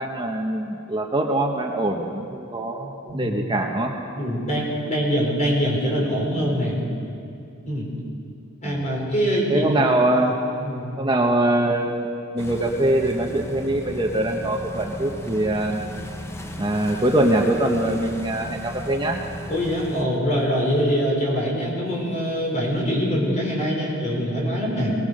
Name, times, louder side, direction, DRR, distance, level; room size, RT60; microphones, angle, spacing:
voice 1, 0.0-3.9 8.6-8.9 9.5-10.4 11.0-12.1 12.3-15.8 16.6-19.2, right 1 dB, 20° right, 1 dB, 1.1 m, -23 dB
voice 2, 4.2-6.8 7.6-7.9 8.6-9.7 10.6-10.9 19.5-25.0, equal, 35° left, -3 dB, 5.3 m, -23 dB
sound 1, 12.4-20.0, left 1 dB, 15° left, 1.0 m, -36 dB
21.0 x 20.5 x 6.6 m, 2.5 s
head